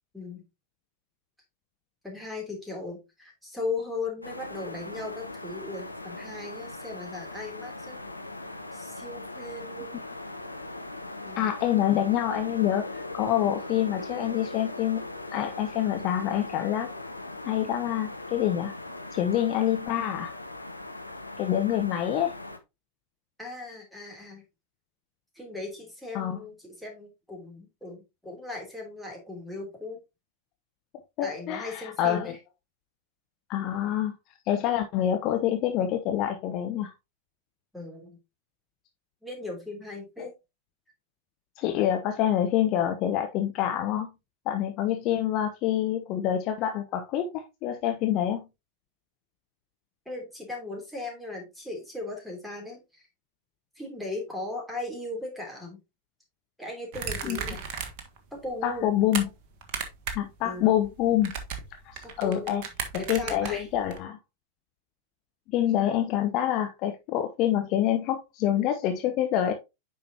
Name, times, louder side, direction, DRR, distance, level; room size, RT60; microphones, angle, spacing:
voice 1, 0.1-0.4 2.0-8.0 8.7-9.9 11.2-11.6 23.4-24.4 25.3-30.0 31.2-32.4 37.7-38.2 39.2-40.3 50.0-53.1 53.7-55.8 56.6-57.6 58.3-59.0 60.4-60.7 62.0-62.7 63.0-63.7, left 2 dB, ahead, 3.1 m, -37 dB
sound 1, 4.2-22.6, left 2 dB, 85° left, 0.8 m, -39 dB
voice 2, 11.4-16.9 17.4-18.7 19.1-20.3 21.4-22.4 26.1-26.4 31.2-32.3 33.5-34.1 34.5-36.9 40.2-40.3 41.6-44.1 44.5-48.4 57.3-57.4 58.6-59.2 60.1-61.3 61.8-62.6 62.9-64.2 65.5-69.5, left 11 dB, 40° left, 0.9 m, -26 dB
sound 2, 56.9-58.2 58.5-59.2 59.6-60.3 60.6-64.0, right 6 dB, 45° right, 1.4 m, -35 dB
9.0 x 5.3 x 2.8 m
figure-of-eight pair, 90°, 0 cm